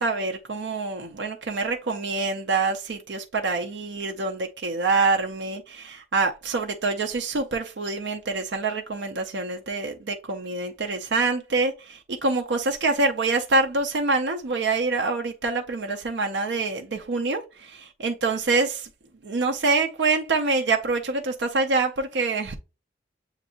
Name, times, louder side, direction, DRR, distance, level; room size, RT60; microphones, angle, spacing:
voice 1, 0.0-18.9 19.2-22.6, right 3 dB, 80° right, 0.5 m, -26 dB
7.2 x 2.6 x 2.8 m
head